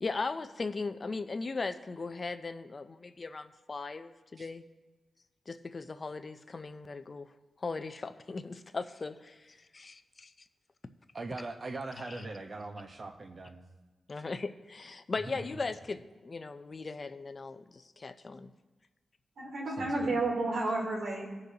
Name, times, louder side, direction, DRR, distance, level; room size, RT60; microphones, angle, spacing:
voice 1, 0.0-4.6 5.5-7.3 7.6-10.3 12.1-12.2 14.1-18.5, left 3 dB, 35° left, 10 dB, 0.5 m, -38 dB
voice 2, 11.1-13.6 15.2-15.4 19.8-20.2, right 3 dB, 40° right, 4 dB, 1.0 m, -41 dB
voice 3, 19.4-21.3, right 2 dB, 75° right, -3 dB, 3.3 m, -31 dB
19.0 x 6.6 x 2.9 m, 1.2 s
wide cardioid pair, 125°, 0 cm